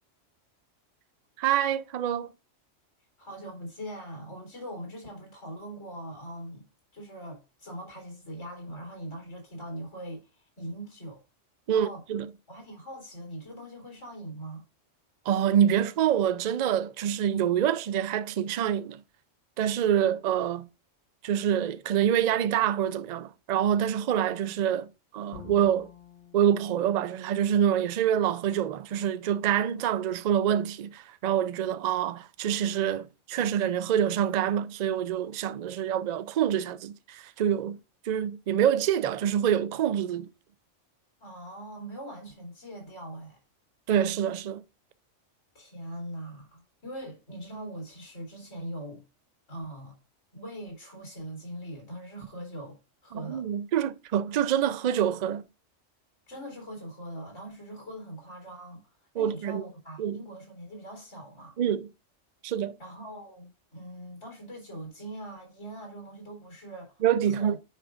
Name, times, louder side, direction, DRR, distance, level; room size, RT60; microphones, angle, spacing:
voice 1, 1.4-2.3 11.7-12.3 15.3-19.0 19.6-20.7 21.2-24.9 25.1-25.9 26.3-37.8 38.0-40.3 43.9-44.6 53.1-55.4 59.2-59.6 60.0-60.2 61.6-61.9 62.4-62.7 67.0-67.6, right 9 dB, 85° right, 0.3 m, -26 dB
voice 2, 3.2-6.6 6.9-11.2 11.7-12.0 12.5-14.6 41.2-43.4 45.5-49.0 49.5-50.0 50.3-52.8 53.0-53.5 56.3-58.8 59.2-61.6 62.8-67.0 67.3-67.6, right 1 dB, 85° left, 3.9 m, -41 dB
Bowed string instrument, 25.3-28.4, left 6 dB, 50° left, 4.4 m, -51 dB
10.0 x 4.9 x 2.5 m
omnidirectional pair, 1.3 m